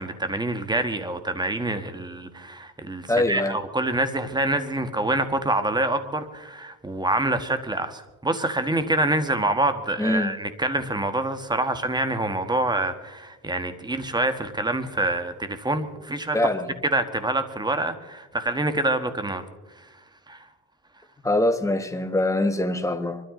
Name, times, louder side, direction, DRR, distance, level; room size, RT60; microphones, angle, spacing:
voice 1, 0.0-16.4 16.8-19.4 19.8-19.9 20.3-20.4, right 2 dB, 15° right, 1.7 m, -26 dB
voice 2, 3.1-3.6 10.0-10.3 16.3-16.7 21.2-23.2, left 1 dB, 10° left, 1.5 m, -23 dB
25.0 x 13.0 x 3.9 m
cardioid pair, 90°, 30 cm